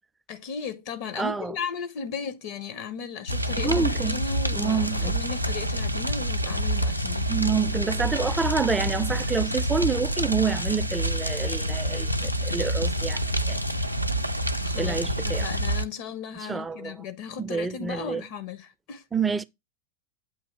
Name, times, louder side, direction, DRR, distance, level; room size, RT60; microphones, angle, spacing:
voice 1, 0.3-7.3 14.6-15.0 15.2-19.0, left 6 dB, 45° left, 0.6 m, -36 dB
voice 2, 1.2-1.5 3.6-4.2 4.5-5.1 7.3-13.6 14.8-15.5 16.4-16.9 17.4-18.2 19.1-19.4, right 5 dB, 10° right, 0.4 m, -28 dB
sound 1, 3.3-15.8, equal, 90° right, 0.4 m, -27 dB
7.7 x 2.7 x 5.5 m
figure-of-eight pair, 90°, 0 cm